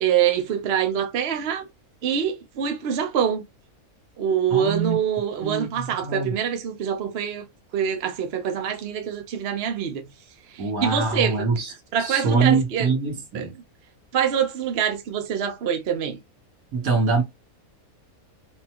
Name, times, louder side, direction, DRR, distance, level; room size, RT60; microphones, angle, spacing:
voice 1, 0.0-1.7 2.0-3.4 4.2-7.4 7.7-10.1 10.5-11.5 11.9-13.0 13.3-13.6 14.1-16.2, right 8 dB, 55° right, 0.8 m, -25 dB
voice 2, 4.5-5.0 5.4-5.7 6.0-6.3 10.6-11.6 12.1-13.5 16.7-17.2, right 4 dB, 70° right, 1.8 m, -23 dB
4.5 x 2.2 x 2.9 m
omnidirectional pair, 1.6 m